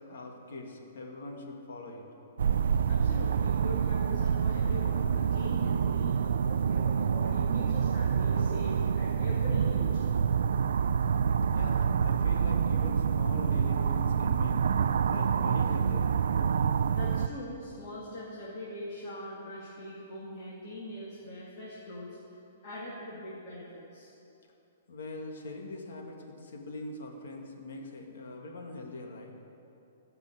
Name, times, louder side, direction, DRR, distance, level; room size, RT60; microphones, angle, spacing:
voice 1, 0.1-2.1 11.5-14.6 15.0-16.2 24.9-29.3, left 2 dB, 70° left, 1 dB, 2.3 m, -42 dB
sound 1, 2.4-17.3, right 7 dB, 80° right, 0.4 m, -27 dB
voice 2, 2.9-10.1 16.9-22.2 22.6-24.1, left 1 dB, 35° left, -7 dB, 2.2 m, -42 dB
16.0 x 6.0 x 8.7 m, 2.8 s
hypercardioid pair, 165°, 0 cm